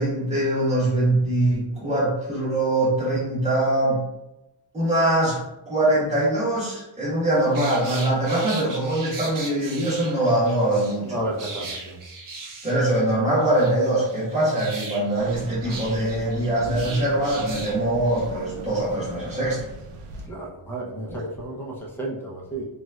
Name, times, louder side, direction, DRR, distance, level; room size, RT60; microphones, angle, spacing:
voice 1, 0.0-4.0 4.7-5.4 5.6-11.2 12.6-19.6 21.1-21.2, right 1 dB, 15° right, -9 dB, 1.2 m, -23 dB
sound 1, 7.4-11.0 11.4-13.1 13.4-17.8 18.1-18.2, right 3 dB, 45° right, 0.5 m, -38 dB
voice 2, 11.0-12.0 20.3-22.7, right 1 dB, 5° left, -3 dB, 0.5 m, -32 dB
sound 2, 15.2-20.3, right 3 dB, 90° right, 0.6 m, -38 dB
4.0 x 2.3 x 2.3 m, 0.93 s
wide cardioid pair, 150°, 49 cm